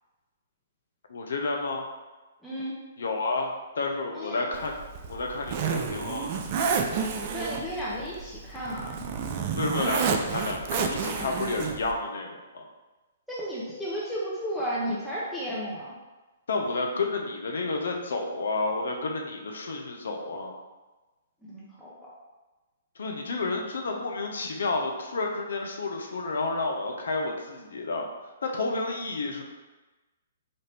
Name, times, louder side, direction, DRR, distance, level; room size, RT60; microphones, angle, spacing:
voice 1, 1.1-1.8 3.0-4.7 5.1-6.3 9.5-12.7 16.5-20.6 23.0-28.1 28.4-29.4, left 3 dB, 70° left, 2 dB, 0.6 m, -30 dB
voice 2, 2.4-2.8 4.1-4.4 7.3-9.0 13.3-15.9 21.4-21.9, equal, 5° left, -8 dB, 0.7 m, -33 dB
Zipper (clothing), 4.5-11.9, right 6 dB, 40° right, 0.4 m, -30 dB
4.2 x 2.6 x 3.3 m, 1.2 s
figure-of-eight pair, 125°, 0 cm